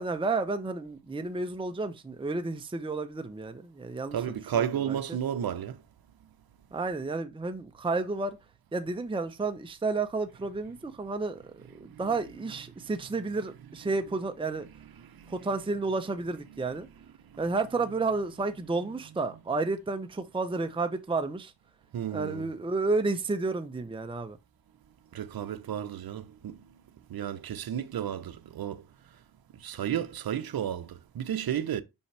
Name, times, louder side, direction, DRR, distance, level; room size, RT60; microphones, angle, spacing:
voice 1, 0.0-5.2 6.7-8.4 8.7-14.7 15.3-16.9 17.4-21.5 22.1-24.4, right 3 dB, 10° right, 0.7 m, -31 dB
voice 2, 4.1-5.8 11.9-12.0 15.0-15.3 21.9-22.5 25.1-26.6 27.1-28.8 29.6-31.8, right 9 dB, 60° right, 0.9 m, -32 dB
5.6 x 5.4 x 3.3 m
cardioid pair, 90°, 42 cm